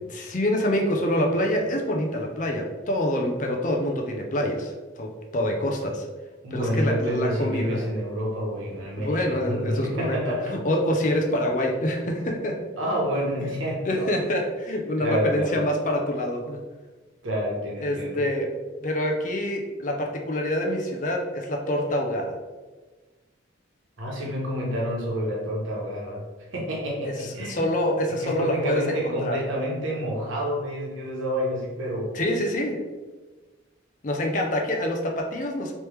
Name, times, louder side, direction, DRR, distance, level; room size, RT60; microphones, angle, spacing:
voice 1, 0.1-6.1 6.5-7.9 9.0-10.2 10.5-12.6 13.8-16.6 17.8-18.5 18.8-22.4 27.1-29.4 32.1-32.8 34.0-35.7, left 1 dB, 40° left, 1 dB, 0.5 m, -26 dB
voice 2, 6.4-10.6 12.8-14.1 15.0-15.5 17.2-18.2 24.0-26.2 26.5-27.7 28.1-32.2, equal, 85° right, -3 dB, 1.1 m, -28 dB
3.3 x 3.0 x 3.2 m, 1.3 s
head